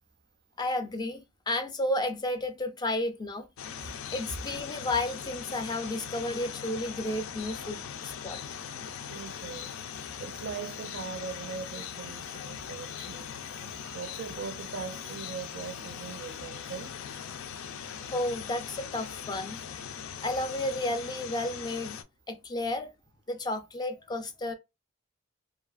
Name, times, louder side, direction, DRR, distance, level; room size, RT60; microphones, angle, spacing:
voice 1, 0.6-3.5 4.1-8.4 18.1-19.6 20.2-22.0 22.3-22.9 23.3-24.5, left 1 dB, 20° left, 0.4 m, -32 dB
sound 1, 3.6-22.0, left 8 dB, 90° left, 0.4 m, -40 dB
voice 2, 9.1-9.7 10.2-17.0 18.9-19.1, right 5 dB, 60° right, 0.4 m, -41 dB
2.7 x 2.4 x 2.3 m
head